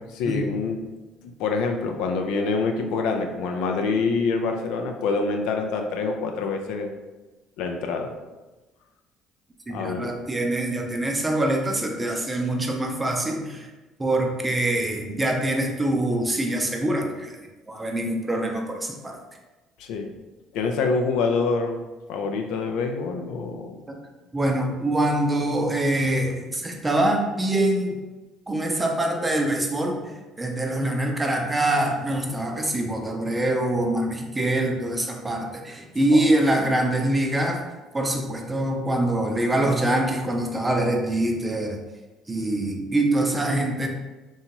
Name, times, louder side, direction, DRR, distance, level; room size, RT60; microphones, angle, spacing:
voice 1, 0.1-0.8 1.2-6.9 7.6-8.1 9.7-10.1 19.8-20.1 20.5-23.8 36.1-36.2, left 4 dB, 70° left, 4 dB, 0.3 m, -26 dB
voice 2, 9.7-13.7 14.0-19.2 23.9-24.0 24.3-28.0 28.5-37.6 37.9-41.8 42.3-43.9, right 1 dB, 20° right, 2 dB, 0.5 m, -24 dB
2.8 x 2.3 x 2.8 m, 1.1 s
hypercardioid pair, 60°, 0 cm